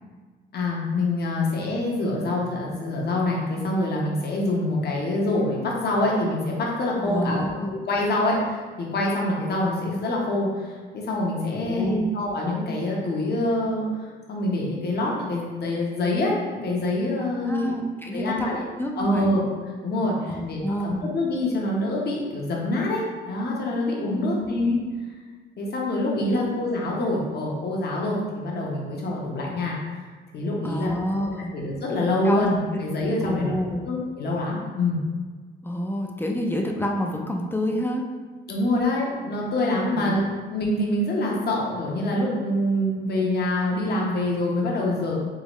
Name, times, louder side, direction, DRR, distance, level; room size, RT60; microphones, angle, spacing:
voice 1, 0.5-17.8 18.1-18.6 19.0-19.4 19.8-24.8 25.6-30.0 30.3-30.9 31.3-33.5 33.8-35.0 38.5-45.2, left 1 dB, 55° left, -2 dB, 1.0 m, -25 dB
voice 2, 7.0-7.7 11.5-12.1 17.2-18.5 18.8-19.4 20.3-21.1 24.1-24.5 26.2-26.6 30.6-31.6 32.2-32.5 33.2-33.9 35.6-38.0 40.0-40.2, equal, 10° left, 1 dB, 0.5 m, -28 dB
3.8 x 3.0 x 3.0 m, 1.4 s
cardioid pair, 90°, 20 cm